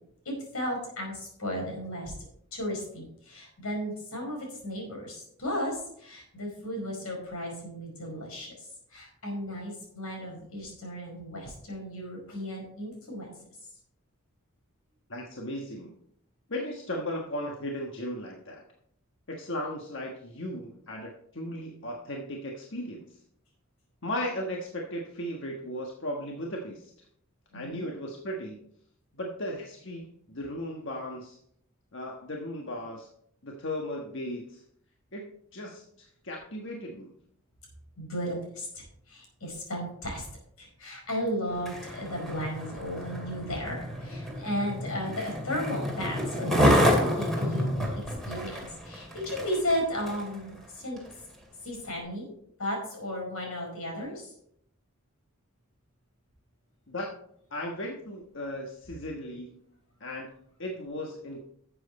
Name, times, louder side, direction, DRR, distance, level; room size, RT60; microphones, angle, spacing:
voice 1, 0.2-2.1 2.5-13.3 27.5-27.9 38.0-40.3 40.6-47.9 48.2-51.0 51.6-52.3 52.6-54.3, equal, 90° left, 0 dB, 5.0 m, -35 dB
voice 2, 15.1-16.0 16.5-18.6 19.3-23.2 24.0-26.9 27.5-28.6 29.1-31.4 31.9-33.1 33.4-34.6 35.1-37.1 56.9-57.1 57.5-59.6 60.0-60.3 60.6-61.4, left 1 dB, 60° left, 0 dB, 1.3 m, -36 dB
Skateboard, 41.5-50.4 51.0-51.1, equal, ahead, 2.4 m, -29 dB
12.0 x 7.7 x 4.2 m, 0.70 s
head